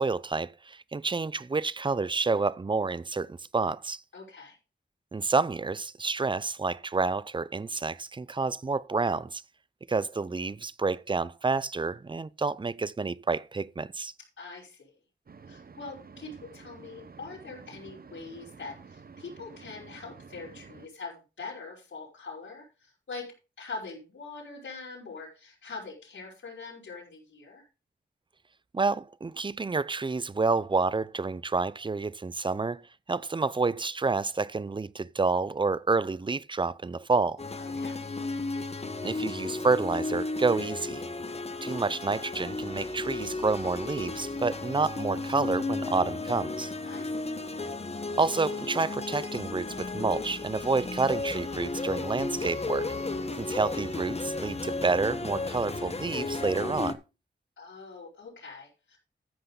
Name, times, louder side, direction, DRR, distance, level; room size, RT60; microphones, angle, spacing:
voice 1, 0.0-4.0 5.1-9.4 9.9-14.1 28.7-32.8 33.1-37.4 39.0-41.0 41.6-46.7 48.2-52.9 53.4-57.0, right 4 dB, 25° right, 0.5 m, -29 dB
voice 2, 4.1-4.6 14.4-14.9 15.5-23.3 23.6-27.7 37.6-38.0 46.8-47.3 57.6-59.0, left 4 dB, 80° left, 5.1 m, -43 dB
sound 1, 15.3-20.9, right 5 dB, 50° right, 0.9 m, -50 dB
sound 2, 37.4-56.9, left 3 dB, 30° left, 1.2 m, -34 dB
14.0 x 6.8 x 4.0 m
wide cardioid pair, 80°, 19 cm